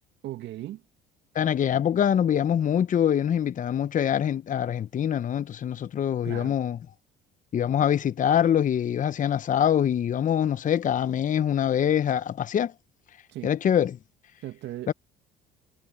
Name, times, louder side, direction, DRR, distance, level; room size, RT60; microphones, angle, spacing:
voice 1, 0.2-0.8 6.2-6.6 13.3-13.5 14.4-14.9, right 14 dB, 65° right, 2.2 m, -37 dB
voice 2, 1.3-6.8 7.5-12.7 13.4-14.0 14.9-15.0, left 9 dB, 40° left, 1.0 m, -24 dB
hypercardioid pair, 65°, 20 cm